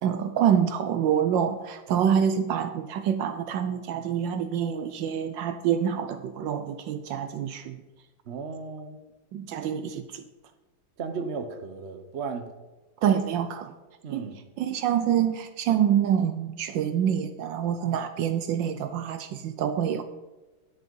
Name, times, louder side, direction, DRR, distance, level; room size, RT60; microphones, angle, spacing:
voice 1, 0.0-7.8 9.3-10.2 13.0-13.7 14.1-14.3 14.6-20.0, right 9 dB, 75° right, 10 dB, 1.2 m, -26 dB
voice 2, 8.3-9.0 11.0-12.5 14.0-14.4, right 5 dB, 55° right, 7 dB, 0.7 m, -35 dB
10.5 x 6.6 x 5.3 m, 1.2 s
omnidirectional pair, 2.3 m